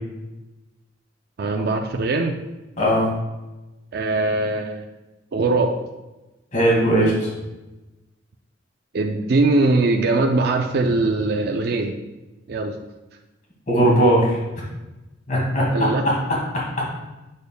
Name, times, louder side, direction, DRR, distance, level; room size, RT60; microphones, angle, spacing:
voice 1, 1.4-2.4 3.9-4.8 5.3-5.8 8.9-12.0 12.5-12.7 15.7-16.0, right 2 dB, 55° right, 3 dB, 0.4 m, -21 dB
voice 2, 2.8-3.1 6.5-7.1 13.7-14.4 15.3-15.7, right 1 dB, 40° left, -5 dB, 2.1 m, -18 dB
6.9 x 6.3 x 2.2 m, 1.1 s
head